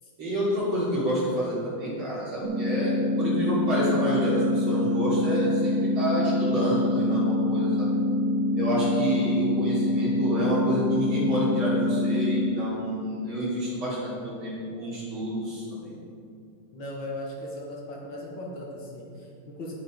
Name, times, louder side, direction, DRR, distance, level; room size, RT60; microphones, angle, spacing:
voice 1, 0.2-7.9 8.5-15.9, equal, 35° right, -8 dB, 3.4 m, -29 dB
sound 1, 2.4-12.4, left 1 dB, 75° right, 3.1 m, -25 dB
voice 2, 16.7-19.7, left 1 dB, 70° left, -3 dB, 1.1 m, -38 dB
10.0 x 8.7 x 5.1 m, 2.4 s
omnidirectional pair, 4.7 m